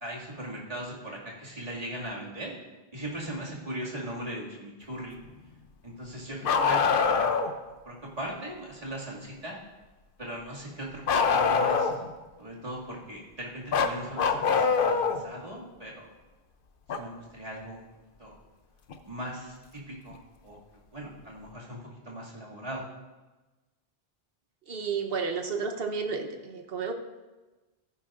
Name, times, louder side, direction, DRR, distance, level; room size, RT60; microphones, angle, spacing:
voice 1, 0.0-2.5 2.9-5.2 5.8-7.4 7.8-9.6 10.2-11.9 12.4-16.0 16.9-17.8 18.2-18.3 19.0-20.6 20.9-22.8, right 1 dB, 35° right, -5 dB, 2.4 m, -39 dB
Bark, 6.4-7.5 11.1-12.1 13.7-15.2 16.9-17.0 18.9-19.0 20.1-20.2, left 5 dB, 60° left, 0.8 m, -24 dB
voice 2, 24.7-26.9, right 5 dB, 65° right, 5 dB, 1.2 m, -32 dB
14.0 x 10.5 x 2.5 m, 1.2 s
omnidirectional pair, 1.1 m